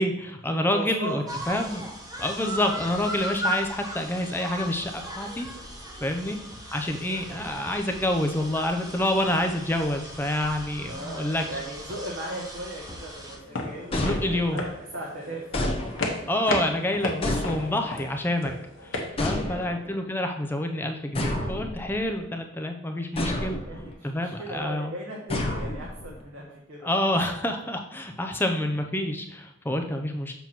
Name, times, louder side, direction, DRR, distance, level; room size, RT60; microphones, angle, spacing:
voice 1, 0.0-1.9 2.2-5.5 6.0-6.4 6.7-11.4 13.9-14.6 16.3-18.5 18.8-23.6 24.0-25.0 26.8-30.3, left 1 dB, 10° left, 4 dB, 0.5 m, -28 dB
voice 2, 0.7-1.3 6.0-6.4 10.8-14.0 14.4-15.4 15.9-16.0 19.3-19.6 23.3-26.9 29.7-30.0, right 1 dB, 80° right, -3 dB, 1.1 m, -38 dB
sound 1, 1.3-13.4, right 1 dB, 20° right, 1.0 m, -37 dB
sound 2, 13.3-19.1, left 2 dB, 80° left, 1.2 m, -33 dB
sound 3, 13.9-14.8 15.5-16.4 17.2-18.1 19.2-20.0 21.1-22.2 23.2-23.9 25.3-26.2, left 1 dB, 30° left, 1.0 m, -30 dB
7.1 x 3.0 x 5.8 m, 0.79 s
head